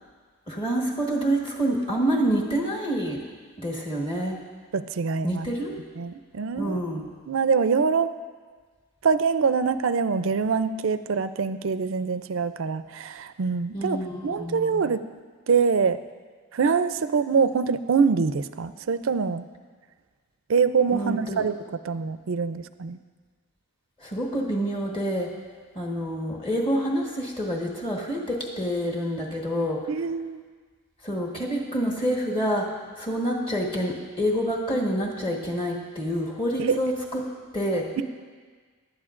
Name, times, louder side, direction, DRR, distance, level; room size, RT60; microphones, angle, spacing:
voice 1, 0.5-3.2 3.6-4.4 5.2-5.8 6.5-7.1 13.7-14.8 20.9-21.4 24.0-25.3 25.7-29.8 31.0-37.2 37.5-37.9, equal, 25° left, -2 dB, 1.3 m, -27 dB
voice 2, 4.7-5.5 6.0-6.8 7.3-8.1 9.0-14.0 14.2-15.0 15.5-16.0 16.5-19.4 20.5-21.6 21.8-23.0 29.9-30.4 36.6-36.8 38.0-38.1, right 5 dB, 65° right, 12 dB, 0.4 m, -24 dB
17.5 x 11.5 x 2.5 m, 1.5 s
head